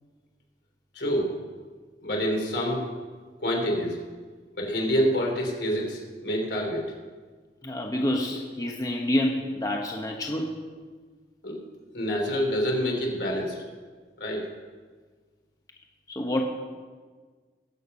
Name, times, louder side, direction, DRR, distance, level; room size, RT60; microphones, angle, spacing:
voice 1, 1.0-1.3 2.0-2.8 3.4-4.0 4.6-6.9 11.4-11.6 11.9-13.6 14.2-14.4, equal, 75° left, 0 dB, 3.4 m, -27 dB
voice 2, 7.6-10.6 16.1-16.4, left 1 dB, 20° left, 1 dB, 1.0 m, -28 dB
20.0 x 8.1 x 5.5 m, 1.5 s
head